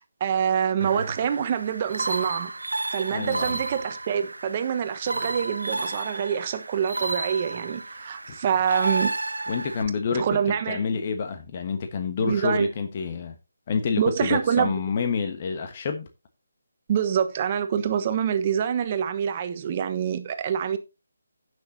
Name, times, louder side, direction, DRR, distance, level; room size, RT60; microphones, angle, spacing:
voice 1, 0.0-2.5 2.9-9.1 10.1-11.0 12.2-12.7 14.0-14.7 16.9-20.8, right 8 dB, 35° right, 1.2 m, -26 dB
sound 1, 0.8-9.8, right 2 dB, 80° right, 0.9 m, -32 dB
voice 2, 3.1-3.6 8.3-8.4 9.5-10.2 10.7-13.3 13.7-16.1, left 5 dB, 35° left, 1.3 m, -28 dB
16.0 x 6.3 x 2.8 m
figure-of-eight pair, 155°, 0 cm